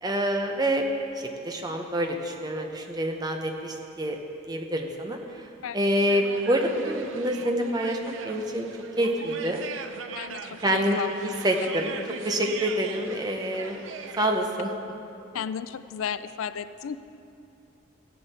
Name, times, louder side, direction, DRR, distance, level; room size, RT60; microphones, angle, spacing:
voice 1, 0.0-0.8 1.2-4.2 4.5-5.2 5.7-8.0 8.2-8.7 9.0-9.6 10.6-12.0 12.2-13.8 14.2-14.7, equal, 20° right, 3 dB, 0.9 m, -27 dB
sound 1, 6.1-14.4, right 5 dB, 70° right, 0.6 m, -40 dB
voice 2, 10.2-11.1 15.3-17.0, left 7 dB, 80° left, 13 dB, 0.4 m, -33 dB
15.0 x 10.0 x 4.3 m, 2.8 s
head